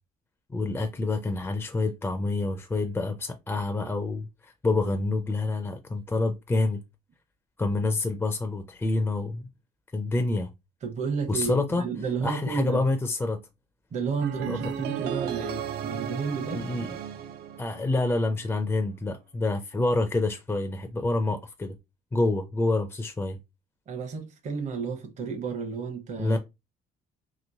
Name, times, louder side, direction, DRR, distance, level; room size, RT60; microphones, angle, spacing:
voice 1, 0.5-6.8 7.6-9.5 9.9-10.5 11.3-11.8 12.2-13.4 14.5-14.7 16.5-16.9 17.6-21.8 22.1-23.4 26.2-26.4, left 2 dB, 15° left, 0.4 m, -27 dB
voice 2, 10.8-12.8 13.9-16.6 23.9-26.4, right 5 dB, 45° right, 0.8 m, -32 dB
sound 1, 14.2-18.3, right 8 dB, 70° right, 0.5 m, -34 dB
2.9 x 2.9 x 2.7 m
cardioid pair, 110°, 17 cm